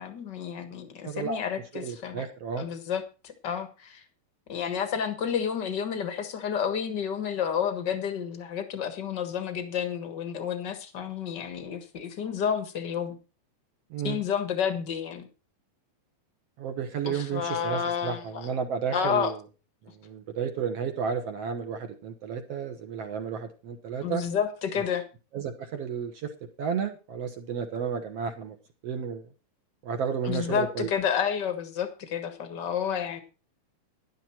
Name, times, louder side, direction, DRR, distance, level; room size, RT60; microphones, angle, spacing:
voice 1, 0.0-2.3 2.6-4.0 4.5-13.2 14.0-15.3 17.0-18.5 18.9-19.3 24.0-25.0 30.2-33.2, left 8 dB, 60° left, 10 dB, 1.1 m, -30 dB
voice 2, 1.0-1.4 1.7-2.6 13.9-14.2 16.6-19.4 20.0-24.2 25.3-26.3 26.6-28.5 28.8-29.3 29.8-30.9, right 7 dB, 65° right, 7 dB, 1.5 m, -32 dB
12.0 x 11.0 x 4.5 m, 0.32 s
omnidirectional pair, 4.4 m